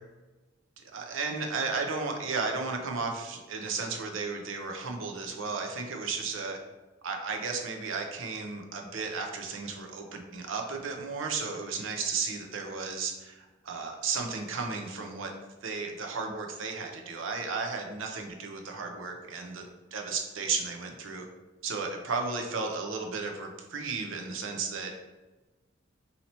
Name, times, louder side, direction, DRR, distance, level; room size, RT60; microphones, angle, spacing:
voice 1, 0.8-6.6 7.0-15.3 15.6-21.3 21.6-24.9, right 4 dB, 75° right, 3 dB, 0.6 m, -34 dB
2.9 x 2.8 x 4.2 m, 1.2 s
head